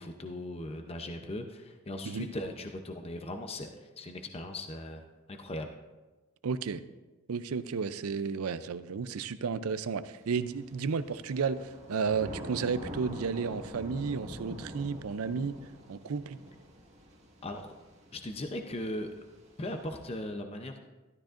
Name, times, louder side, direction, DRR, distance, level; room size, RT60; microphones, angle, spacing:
voice 1, 0.0-5.0 5.3-5.7 17.4-17.7 18.1-19.1 19.6-20.9, left 1 dB, 25° left, 5 dB, 0.6 m, -38 dB
voice 2, 6.4-6.8 7.3-15.6 15.9-16.4, right 5 dB, 80° right, 13 dB, 0.5 m, -32 dB
Thunder / Rain, 10.2-20.2, equal, 30° right, 1.5 m, -46 dB
13.0 x 12.5 x 2.5 m, 1.2 s
head